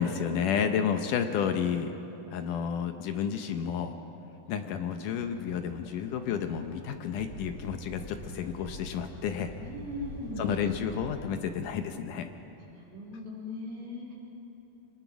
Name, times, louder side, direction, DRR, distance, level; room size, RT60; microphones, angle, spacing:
voice 1, 0.0-1.9 2.3-4.0 4.5-9.6 10.4-12.3, left 7 dB, 75° left, 7 dB, 2.1 m, -31 dB
sound 1, 4.9-11.3, left 1 dB, 30° left, 3.7 m, -45 dB
voice 2, 9.6-10.7 12.6-14.1, left 1 dB, 75° right, -5 dB, 5.7 m, -39 dB
26.5 x 19.5 x 6.1 m, 3.0 s
omnidirectional pair, 4.3 m